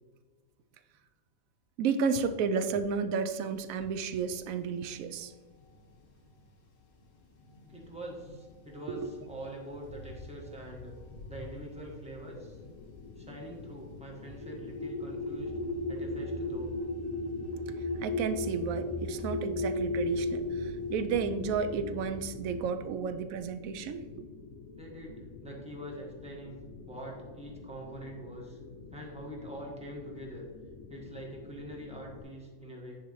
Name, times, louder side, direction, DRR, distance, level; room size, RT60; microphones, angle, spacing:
voice 1, 1.8-5.3 8.9-9.1 18.0-24.2, right 5 dB, 75° right, 9 dB, 1.0 m, -32 dB
sound 1, 3.4-21.0, left 2 dB, 60° left, 1.4 m, -54 dB
voice 2, 7.7-10.9 11.3-12.6 13.2-15.5 15.9-16.7 24.8-25.1 25.4-26.5 26.9-28.6 28.9-30.4 30.9-33.0, right 1 dB, 5° right, -2 dB, 1.2 m, -44 dB
sound 2, 12.2-32.2, left 5 dB, 85° left, 1.1 m, -49 dB
sound 3, 14.3-22.6, left 2 dB, 40° left, 0.3 m, -35 dB
9.9 x 4.8 x 3.1 m, 1.5 s
omnidirectional pair, 1.5 m